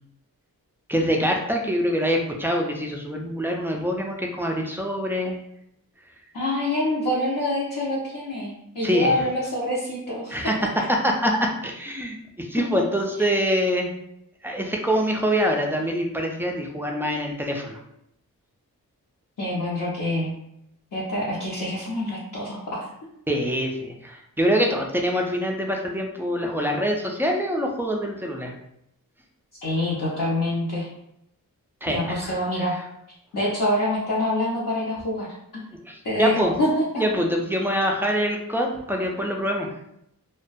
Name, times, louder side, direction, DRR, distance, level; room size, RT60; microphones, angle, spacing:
voice 1, 0.9-5.4 8.8-9.2 10.3-10.5 11.0-13.9 14.4-17.8 23.3-28.5 31.8-32.3 35.9-36.5 37.0-39.7, equal, 5° right, 0 dB, 0.3 m, -25 dB
voice 2, 6.3-10.9 12.7-12.8 13.2-13.3 19.4-20.3 20.9-22.8 29.6-30.9 31.9-32.8 33.3-35.3 36.0-37.0, left 1 dB, 65° left, -7 dB, 0.7 m, -26 dB
2.3 x 2.1 x 2.5 m, 0.78 s
wide cardioid pair, 90°, 35 cm